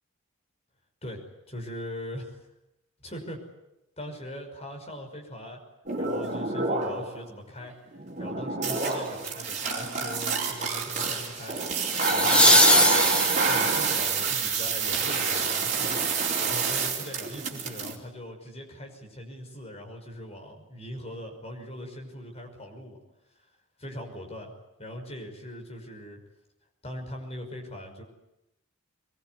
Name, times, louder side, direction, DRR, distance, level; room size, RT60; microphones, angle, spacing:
voice 1, 1.0-2.5 3.0-3.4 4.0-5.6 6.0-7.7 8.2-11.6 11.8-13.2 13.5-16.1 16.4-23.0 23.8-24.5 24.8-26.2 26.8-28.0, equal, 30° left, 2 dB, 5.9 m, -41 dB
sound 1, 5.9-7.2 7.6-17.9, right 4 dB, 35° right, 4.5 m, -27 dB
sound 2, 8.9-9.2 11.9-13.8 16.7-16.8, left 1 dB, 5° left, 1.7 m, -21 dB
23.5 x 22.5 x 9.7 m, 0.88 s
head